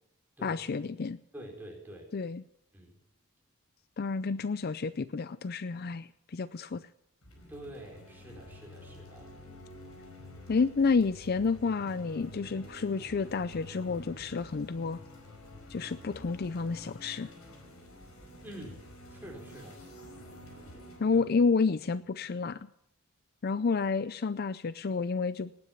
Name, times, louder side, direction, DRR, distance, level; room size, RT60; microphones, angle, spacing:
voice 1, 0.4-1.2 2.1-2.4 4.0-6.9 10.5-15.0 15.7-17.3 21.0-22.7 23.4-25.5, left 4 dB, 45° left, 15 dB, 0.5 m, -30 dB
voice 2, 1.3-2.1 2.7-3.0 7.5-9.3 18.4-18.8 19.1-19.8 21.1-21.2, right 1 dB, 10° right, -1 dB, 4.6 m, -46 dB
sound 1, 7.2-22.6, left 1 dB, 75° left, 5.0 m, -50 dB
18.5 x 9.8 x 7.2 m, 0.78 s
head